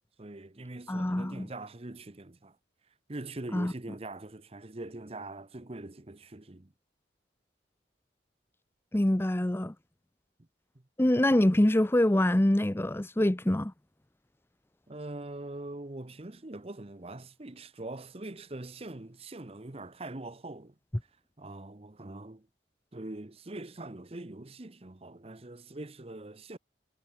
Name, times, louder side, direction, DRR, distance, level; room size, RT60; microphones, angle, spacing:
voice 1, 0.2-2.6 3.1-6.7 14.9-20.7 21.4-22.5 22.9-26.6, right 2 dB, 35° right, 0.9 m, -43 dB
voice 2, 0.9-1.5 3.5-3.7 8.9-9.7 11.0-13.7, left 1 dB, 15° left, 0.6 m, -25 dB
head